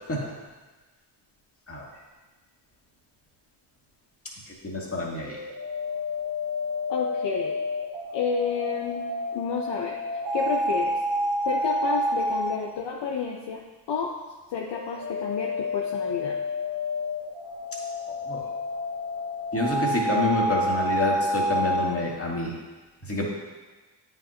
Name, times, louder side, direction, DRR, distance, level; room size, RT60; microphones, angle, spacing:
voice 1, 4.6-5.4 18.1-18.4 19.5-22.5 23.1-23.3, left 2 dB, 30° left, -3 dB, 2.2 m, -27 dB
sound 1, 5.3-12.6 14.6-21.9, left 1 dB, 55° right, 1.4 m, -29 dB
voice 2, 6.9-7.5 8.1-9.1 9.3-11.0 11.4-13.6 13.9-14.1 14.5-16.4, left 5 dB, 60° left, 0 dB, 0.8 m, -30 dB
8.9 x 5.6 x 2.9 m, 1.2 s
supercardioid pair, 45°, 48 cm